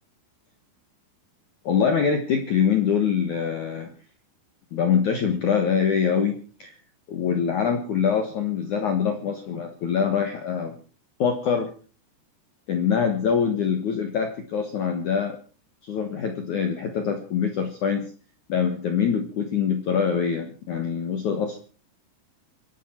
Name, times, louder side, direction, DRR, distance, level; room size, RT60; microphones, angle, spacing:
voice 1, 1.7-3.9 4.7-6.8 7.1-10.8 11.2-11.7 12.7-15.4 15.8-18.1 18.5-21.6, left 7 dB, 75° left, 6 dB, 1.8 m, -24 dB
26.0 x 11.5 x 4.4 m, 0.39 s
omnidirectional pair, 5.8 m